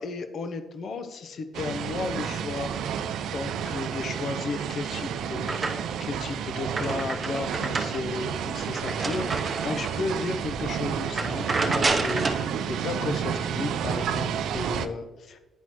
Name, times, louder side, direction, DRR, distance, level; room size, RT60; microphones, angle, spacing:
voice 1, 0.0-3.1 3.3-15.4, left 3 dB, 60° left, 9 dB, 0.6 m, -34 dB
sound 1, 1.5-14.9, right 8 dB, 80° right, 0.3 m, -31 dB
sound 2, 4.5-6.1 6.5-10.1 10.5-10.7 11.0-12.5, right 3 dB, 35° right, 0.7 m, -30 dB
10.0 x 4.2 x 3.0 m, 1.1 s
cardioid pair, 90°, 0 cm